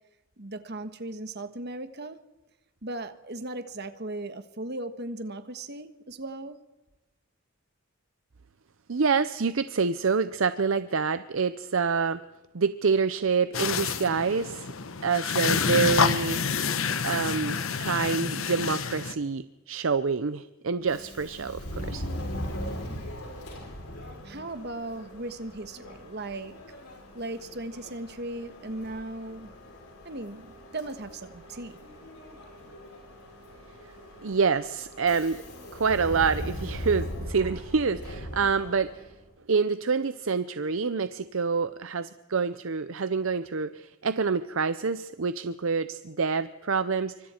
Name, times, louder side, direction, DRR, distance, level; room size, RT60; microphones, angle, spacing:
voice 1, 0.4-2.2 2.8-6.6 24.2-26.6 27.1-29.5 30.0-31.8, right 2 dB, 45° right, 10 dB, 1.4 m, -37 dB
voice 2, 8.9-12.2 12.5-14.7 15.0-16.4 17.0-22.1 34.2-35.4 35.7-39.0 39.5-47.3, right 5 dB, 60° right, 13 dB, 0.6 m, -27 dB
sound 1, 13.5-19.1, left 5 dB, 65° left, 1.1 m, -28 dB
Subway metro underground, 20.8-39.2, equal, 85° left, 6.8 m, -40 dB
27.0 x 24.5 x 4.4 m, 1.0 s
head